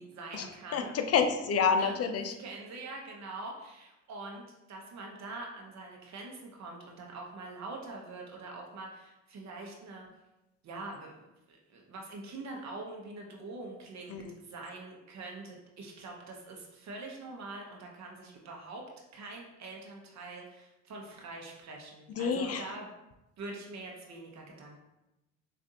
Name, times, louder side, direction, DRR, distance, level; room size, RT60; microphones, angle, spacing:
voice 1, 0.0-1.0 1.7-10.1 10.6-18.9 19.1-22.9 23.4-24.8, right 2 dB, 65° right, 0 dB, 0.8 m, -44 dB
voice 2, 0.7-2.3 14.1-14.3 22.2-22.6, left 6 dB, 55° left, 7 dB, 0.6 m, -28 dB
6.3 x 2.6 x 2.7 m, 0.96 s
cardioid pair, 90°, 30 cm